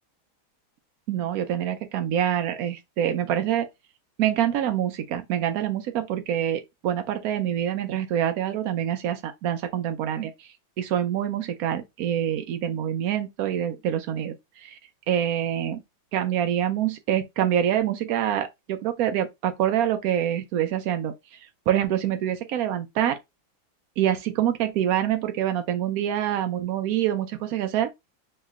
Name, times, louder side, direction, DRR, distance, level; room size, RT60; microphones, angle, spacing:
voice 1, 1.1-3.7 4.2-14.8 15.1-15.8 16.1-21.4 21.7-23.2 24.0-27.9, right 10 dB, 85° right, 0.8 m, -26 dB
3.2 x 2.9 x 3.5 m
omnidirectional pair, 2.2 m